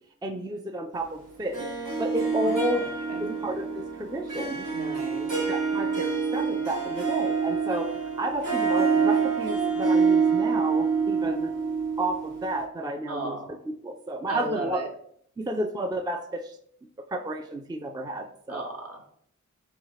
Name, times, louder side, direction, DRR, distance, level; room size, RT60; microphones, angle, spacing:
voice 1, 0.2-1.7 2.0-2.8 3.2-4.7 5.5-11.5 12.0-14.8 15.4-16.6 17.0-18.7, right 1 dB, 15° right, 5 dB, 0.4 m, -32 dB
Harp, 1.5-12.6, right 5 dB, 80° right, 1.1 m, -26 dB
voice 2, 2.4-2.8 3.1-3.4 4.7-5.3 13.1-13.6 14.3-14.9 18.5-19.1, right 2 dB, 50° right, 2 dB, 1.0 m, -35 dB
4.3 x 2.4 x 4.7 m, 0.65 s
wide cardioid pair, 60°, 31 cm